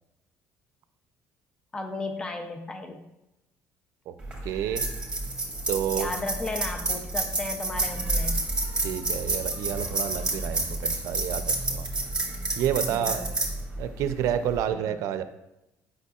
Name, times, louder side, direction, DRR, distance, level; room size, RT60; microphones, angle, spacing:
voice 1, 1.7-3.0 5.9-8.4 12.9-13.4 14.7-14.9, left 2 dB, 15° left, 5 dB, 0.6 m, -35 dB
sound 1, 4.2-14.7, right 2 dB, 15° right, 1.9 m, -29 dB
voice 2, 4.4-4.8 5.7-6.1 8.8-11.9 12.6-13.3 13.8-15.2, right 10 dB, 70° right, 10 dB, 0.5 m, -29 dB
8.2 x 5.8 x 2.4 m, 0.90 s
cardioid pair, 110°, 6 cm